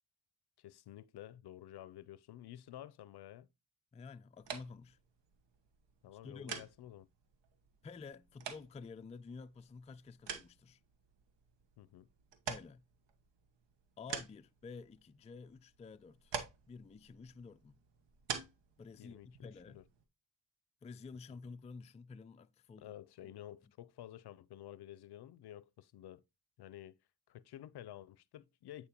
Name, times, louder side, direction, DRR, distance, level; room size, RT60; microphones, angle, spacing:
voice 1, 0.6-3.5 6.0-7.1 11.8-12.1 19.0-19.8 22.8-26.2 26.6-27.0 27.3-28.9, left 12 dB, 65° left, 0.5 m, -51 dB
voice 2, 3.9-5.0 6.2-6.7 7.8-10.8 12.5-12.8 14.0-16.3 16.7-17.8 18.8-19.8 20.8-22.9 23.2-23.3, left 4 dB, 15° left, 0.3 m, -51 dB
sound 1, 4.3-20.0, right 7 dB, 75° right, 1.1 m, -48 dB
8.7 x 4.4 x 2.9 m
supercardioid pair, 55°, 43 cm